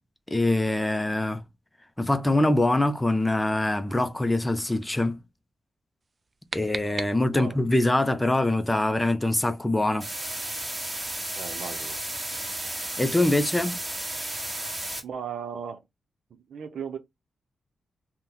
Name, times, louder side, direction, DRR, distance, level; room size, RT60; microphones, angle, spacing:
voice 1, 0.3-1.4 2.0-5.2 6.5-10.1 13.0-13.8, left 1 dB, 10° left, 0.5 m, -24 dB
sound 1, 6.0-7.7, right 3 dB, 35° right, 0.4 m, -38 dB
sound 2, 10.0-15.0, right 1 dB, 20° right, 1.2 m, -33 dB
voice 2, 11.4-12.0 15.0-15.8 16.3-17.0, right 7 dB, 75° right, 0.6 m, -36 dB
2.8 x 2.2 x 3.8 m
cardioid pair, 95°, 0 cm